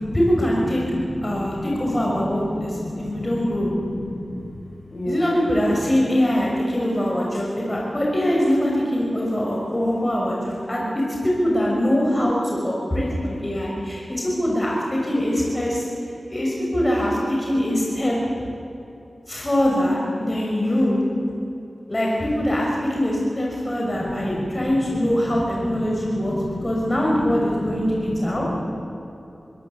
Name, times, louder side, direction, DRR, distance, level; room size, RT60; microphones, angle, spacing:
voice 1, 0.0-0.8 1.2-3.7 5.1-15.9 16.3-18.2 19.3-21.0 21.9-26.3 26.6-28.4, equal, 30° left, -3 dB, 6.1 m, -23 dB
voice 2, 0.6-4.5 4.9-6.0 23.9-28.6, left 1 dB, 50° left, -1 dB, 7.0 m, -32 dB
22.5 x 17.5 x 8.3 m, 2.8 s
cardioid pair, 45°, 0 cm